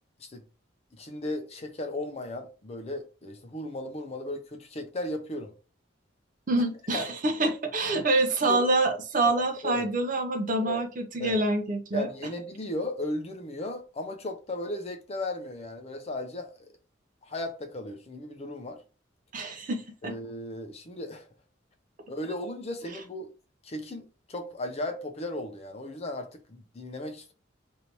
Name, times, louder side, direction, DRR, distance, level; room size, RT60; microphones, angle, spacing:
voice 1, 1.0-5.5 6.9-7.0 7.9-8.0 8.4-8.7 9.2-9.3 9.6-9.9 10.6-10.8 11.2-11.4 11.9-16.7 17.2-18.8 20.0-21.3 22.1-23.3 23.6-27.3, left 1 dB, 35° left, 0.5 m, -36 dB
voice 2, 6.5-12.1 19.3-20.2, right 2 dB, 45° right, 0.6 m, -26 dB
3.3 x 2.6 x 2.9 m
head